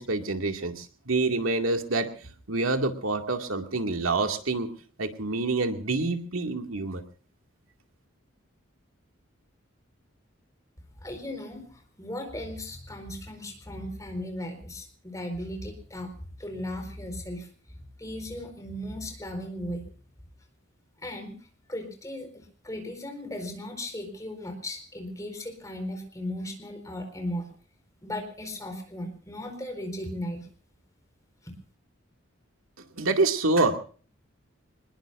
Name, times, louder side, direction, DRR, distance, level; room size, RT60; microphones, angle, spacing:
voice 1, 0.0-2.1 2.5-4.7 5.0-7.0 33.0-33.8, right 3 dB, 90° right, 5 dB, 2.3 m, -27 dB
voice 2, 11.0-16.1 16.4-17.5 18.0-19.8 21.0-21.4 21.7-27.5 28.0-30.5 31.4-31.5, left 1 dB, 15° left, 5 dB, 4.4 m, -36 dB
25.5 x 20.5 x 2.6 m, 0.41 s
head